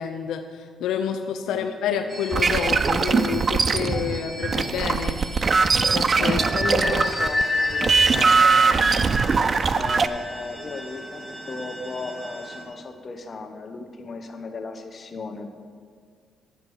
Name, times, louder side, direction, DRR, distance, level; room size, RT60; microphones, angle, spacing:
voice 1, 0.0-5.2 5.8-6.4 6.8-6.9, left 8 dB, 85° left, 6 dB, 0.4 m, -29 dB
sound 1, 2.1-12.6, left 2 dB, 5° right, 1.5 m, -32 dB
sound 2, 2.3-7.4 7.7-10.1, right 4 dB, 40° right, 0.4 m, -21 dB
voice 2, 6.2-15.5, left 4 dB, 40° left, 5 dB, 1.0 m, -35 dB
9.1 x 7.6 x 4.8 m, 2.1 s
cardioid pair, 90°, 0 cm